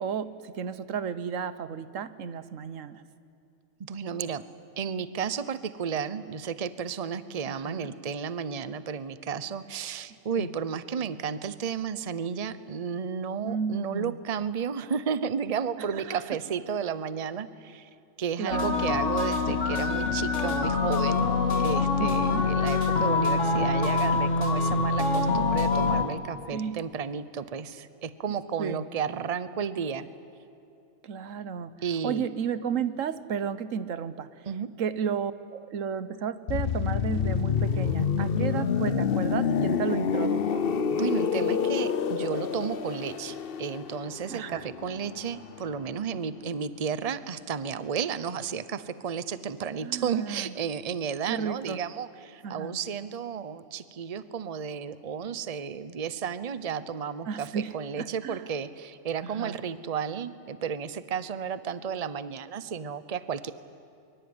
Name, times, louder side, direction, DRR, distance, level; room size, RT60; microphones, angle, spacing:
voice 1, 0.0-3.0 7.5-7.9 10.4-10.5 13.4-14.1 15.9-16.2 18.4-18.9 22.0-22.4 26.5-26.7 28.6-28.8 31.0-31.7 32.0-34.3 34.8-40.6 44.3-44.6 49.8-50.5 51.3-51.8 52.4-52.8 57.3-57.7 58.0-58.4 59.2-59.6, right 7 dB, 90° right, 14 dB, 1.3 m, -33 dB
voice 2, 3.8-4.4 4.8-17.9 18.2-21.3 21.6-30.1 31.8-32.3 34.5-34.7 40.9-63.5, right 7 dB, 35° right, 14 dB, 0.8 m, -33 dB
sound 1, 18.5-26.0, left 4 dB, 70° left, 2.3 m, -25 dB
sound 2, 36.5-46.1 46.4-46.6, left 7 dB, 50° left, 1.0 m, -28 dB
24.0 x 23.5 x 9.6 m, 2.7 s
omnidirectional pair, 1.3 m